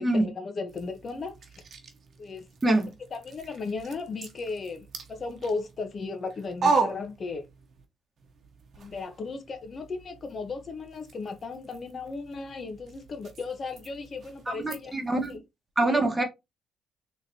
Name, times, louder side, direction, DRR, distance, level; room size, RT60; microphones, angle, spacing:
voice 1, 0.0-1.3 2.2-2.5 3.1-7.4 8.8-14.9 15.3-15.4 15.8-16.0, left 4 dB, 45° left, 1.0 m, -36 dB
sound 1, 0.7-7.9 8.2-15.4, right 4 dB, 55° right, 0.9 m, -36 dB
voice 2, 2.6-2.9 14.5-15.4 15.8-16.2, right 2 dB, 15° right, 1.3 m, -25 dB
3.9 x 3.2 x 2.8 m
cardioid pair, 90°, 0 cm